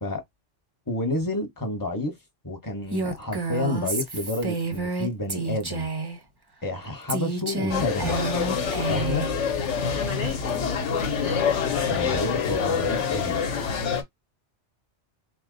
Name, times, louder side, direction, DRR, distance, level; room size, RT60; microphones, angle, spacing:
voice 1, 0.9-2.1 2.4-5.9 6.6-8.2 8.9-9.3 11.9-13.4, left 2 dB, 15° left, 1.0 m, -30 dB
Female speech woman speaking, 2.9-6.2 7.1-9.3, right 3 dB, 25° right, 0.6 m, -29 dB
sound 1, 7.7-14.0, left 6 dB, 75° left, 1.1 m, -26 dB
voice 2, 9.9-11.7 12.6-12.7, left 5 dB, 50° left, 0.7 m, -36 dB
3.9 x 2.2 x 3.9 m
omnidirectional pair, 1.3 m